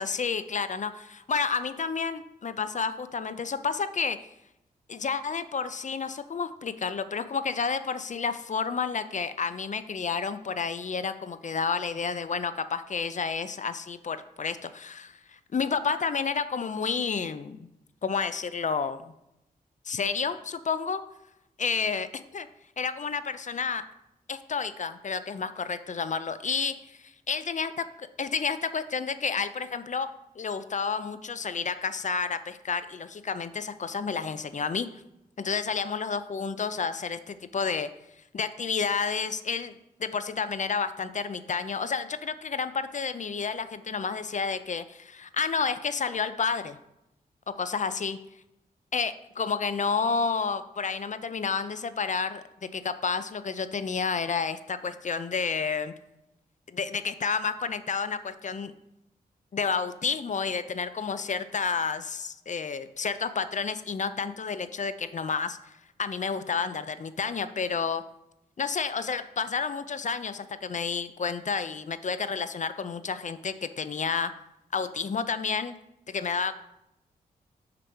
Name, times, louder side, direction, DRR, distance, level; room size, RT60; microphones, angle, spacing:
voice 1, 0.0-4.2 4.9-17.7 18.0-19.0 19.9-21.0 21.6-22.5 22.8-23.8 24.3-27.0 27.3-30.1 30.4-34.9 35.4-37.9 38.3-39.7 40.0-46.8 47.5-48.2 48.9-55.9 56.7-58.7 59.5-68.0 68.6-74.3 74.7-75.8 76.1-76.6, left 5 dB, 45° left, 13 dB, 0.5 m, -30 dB
5.9 x 4.9 x 4.5 m, 0.86 s
cardioid pair, 50°, 17 cm